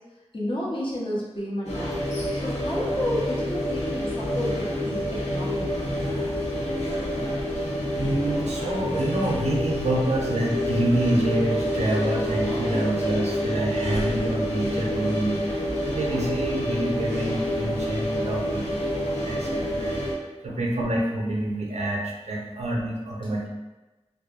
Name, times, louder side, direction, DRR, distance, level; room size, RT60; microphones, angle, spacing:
voice 1, 0.3-2.0 2.3-5.8 20.5-20.6, left 1 dB, 50° left, -6 dB, 0.7 m, -31 dB
sound 1, 1.6-20.1, left 1 dB, 85° left, 0.6 m, -28 dB
voice 2, 8.0-20.0 20.4-23.5, right 1 dB, 90° right, -2 dB, 0.4 m, -27 dB
2.6 x 2.0 x 2.4 m, 1.1 s
wide cardioid pair, 60°, 11 cm